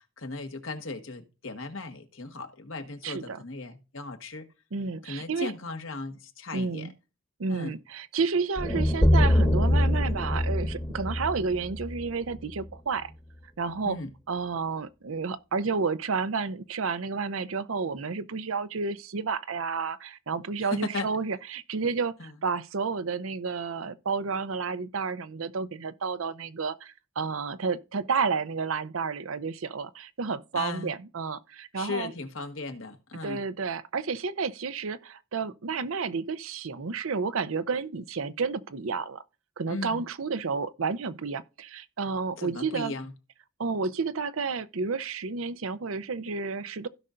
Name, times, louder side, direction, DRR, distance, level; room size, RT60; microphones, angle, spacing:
voice 1, 0.0-4.5 5.0-6.9 7.5-7.7 13.8-14.1 20.6-21.1 22.2-22.3 30.5-30.9 31.7-33.4 39.7-40.0 42.4-43.1, left 3 dB, 70° left, 1.5 m, -37 dB
voice 2, 3.0-3.4 4.7-5.5 6.5-6.9 7.4-13.1 13.6-14.0 14.3-32.1 33.2-39.2 39.6-42.9 43.6-46.9, right 4 dB, 80° right, 0.7 m, -31 dB
sound 1, 8.6-12.7, left 1 dB, 20° left, 1.1 m, -24 dB
16.0 x 5.6 x 2.5 m
head